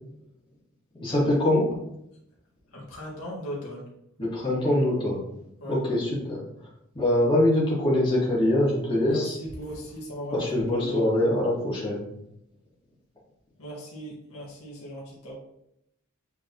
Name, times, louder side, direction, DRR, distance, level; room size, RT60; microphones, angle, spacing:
voice 1, 1.0-1.7 4.2-5.2 5.7-6.4 6.9-9.4 10.3-12.0, left 1 dB, 25° left, -7 dB, 2.1 m, -23 dB
voice 2, 2.7-3.8 5.6-5.7 9.1-11.0 13.6-15.4, equal, 70° left, -4 dB, 2.0 m, -38 dB
8.2 x 3.9 x 3.0 m, 0.79 s
head